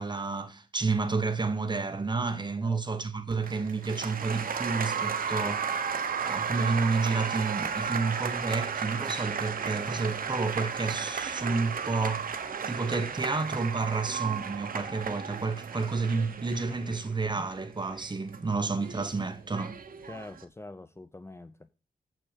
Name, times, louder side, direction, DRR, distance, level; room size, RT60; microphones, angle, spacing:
voice 1, 0.0-12.4 12.7-19.8, right 4 dB, 30° right, 1.1 m, -30 dB
Applause, 3.3-20.4, right 6 dB, 65° right, 1.1 m, -34 dB
voice 2, 20.1-21.7, left 2 dB, 15° left, 0.6 m, -45 dB
7.7 x 6.2 x 6.7 m
wide cardioid pair, 100°, 16 cm